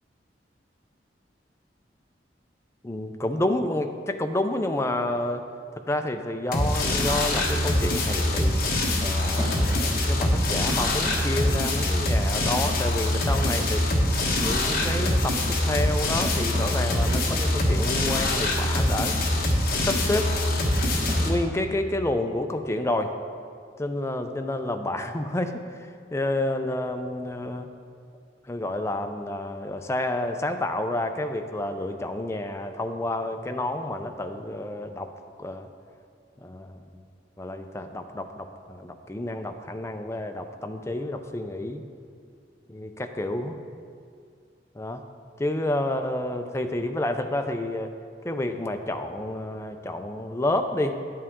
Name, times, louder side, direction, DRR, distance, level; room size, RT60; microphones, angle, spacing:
voice 1, 2.8-5.4 5.9-8.6 9.0-13.9 14.4-19.2 19.8-20.3 21.2-23.1 23.8-27.7 28.5-35.1 35.4-35.7 36.4-36.8 37.4-41.9 42.7-43.6 44.7-45.0 45.4-48.0 48.2-51.0, left 1 dB, 15° left, 6 dB, 0.4 m, -29 dB
sound 1, 6.5-21.3, left 1 dB, 50° left, 1.2 m, -24 dB
sound 2, 9.3-10.0 11.1-12.0 13.0-13.7 14.3-15.1 15.5-15.7 16.5-17.3 17.7-18.3 19.0-19.5 19.9-20.1 20.7-21.5, equal, 25° right, 1.2 m, -37 dB
9.9 x 8.5 x 3.6 m, 2.3 s
head